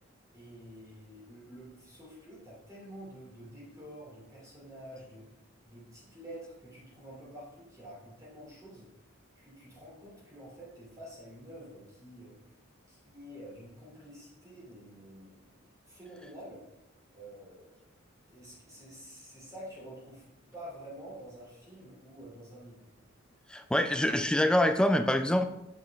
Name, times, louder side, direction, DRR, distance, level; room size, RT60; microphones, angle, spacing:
voice 1, 0.3-5.3 5.6-8.9 9.3-12.4 12.9-16.7 17.1-17.9 18.3-20.2 20.5-22.8, equal, 15° right, -6 dB, 2.9 m, -48 dB
voice 2, 23.5-25.4, left 1 dB, 5° left, 7 dB, 0.4 m, -25 dB
7.7 x 5.9 x 3.5 m, 0.91 s
head